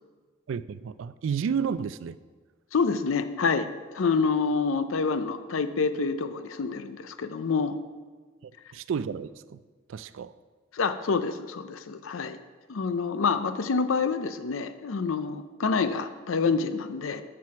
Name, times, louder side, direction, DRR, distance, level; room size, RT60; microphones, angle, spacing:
voice 1, 0.5-2.2 8.4-9.6 9.9-10.3, right 6 dB, 75° right, 0.3 m, -31 dB
voice 2, 2.7-3.7 3.9-7.8 10.7-12.4 12.7-17.2, left 4 dB, 80° left, 0.5 m, -27 dB
7.5 x 6.0 x 5.9 m
head